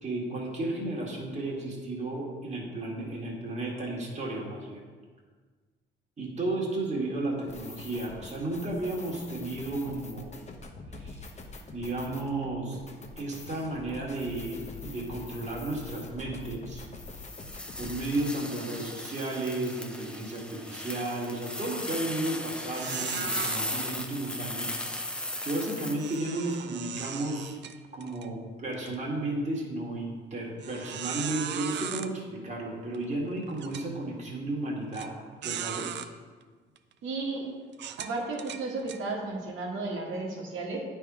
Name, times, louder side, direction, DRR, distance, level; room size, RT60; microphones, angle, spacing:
voice 1, 0.0-4.8 6.2-10.3 10.9-11.2 11.7-12.8 13.2-16.8 17.8-24.8 25.4-27.6 27.9-35.2 35.4-36.0, right 2 dB, 35° right, -3 dB, 2.0 m, -33 dB
sound 1, 7.4-18.4, left 3 dB, 35° left, 0.9 m, -45 dB
sound 2, 17.0-26.2, left 1 dB, 5° left, 0.7 m, -37 dB
Squeaky Chair, 21.7-21.9 22.3-22.4 22.7-23.6 25.9-28.3 28.7-28.9 29.5-29.6 30.6-32.1 32.9-33.0 33.6-33.9 34.9-35.1 35.4-36.1 36.8-36.9 37.7-39.0, right 9 dB, 65° right, 0.5 m, -37 dB
voice 2, 37.0-37.5 38.0-40.8, right 3 dB, 80° right, -1 dB, 1.6 m, -33 dB
9.5 x 3.6 x 4.8 m, 1.5 s
cardioid pair, 90°, 20 cm